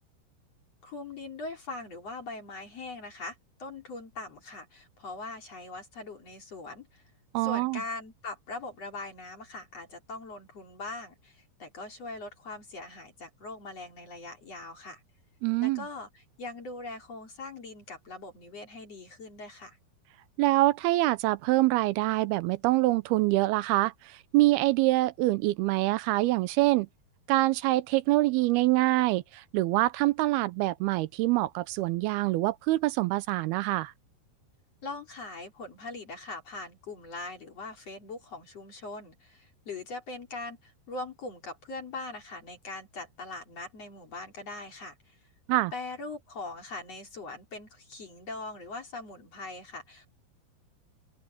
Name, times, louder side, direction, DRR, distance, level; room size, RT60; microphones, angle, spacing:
voice 1, 0.8-7.0 7.4-15.0 15.6-19.8 34.8-45.2 45.7-50.1, left 3 dB, 40° left, 4.3 m, -41 dB
voice 2, 7.3-7.8 15.4-15.8 20.4-26.9 27.3-33.9 45.5-45.7, right 18 dB, 85° right, 2.6 m, -25 dB
open air
omnidirectional pair, 4.5 m